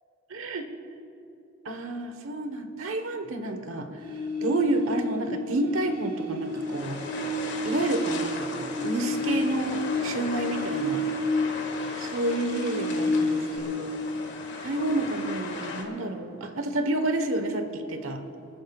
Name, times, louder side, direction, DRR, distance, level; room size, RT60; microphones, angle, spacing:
voice 1, 0.3-0.7 1.6-3.9 4.4-7.0 7.6-11.1 12.0-13.9 14.6-18.2, right 2 dB, 85° right, 7 dB, 1.2 m, -29 dB
sound 1, 4.0-5.3 5.6-11.7 12.0-13.6, left 1 dB, 25° right, 1.2 m, -30 dB
sound 2, 6.4-15.8, left 3 dB, 60° left, 1.9 m, -37 dB
27.0 x 13.5 x 2.4 m, 2.9 s
head